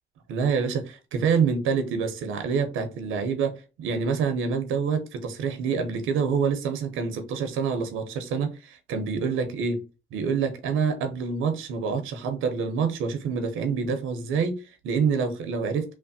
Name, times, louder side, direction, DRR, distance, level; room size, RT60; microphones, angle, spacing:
voice 1, 0.3-9.8 10.1-15.9, right 5 dB, 90° right, 0.7 m, -27 dB
3.2 x 2.1 x 2.6 m
cardioid pair, 90°, 20 cm